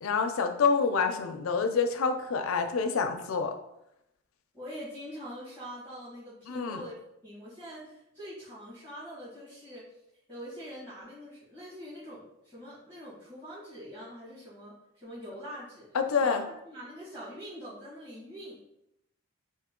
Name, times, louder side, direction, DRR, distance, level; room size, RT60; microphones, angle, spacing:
voice 1, 0.0-3.5 6.5-6.8 15.9-16.4, left 5 dB, 75° left, 6 dB, 0.5 m, -27 dB
voice 2, 4.5-6.9 7.2-10.0 10.3-15.9 16.2-16.4 16.6-18.6, equal, 20° right, -12 dB, 1.4 m, -44 dB
3.7 x 2.7 x 3.6 m, 0.82 s
head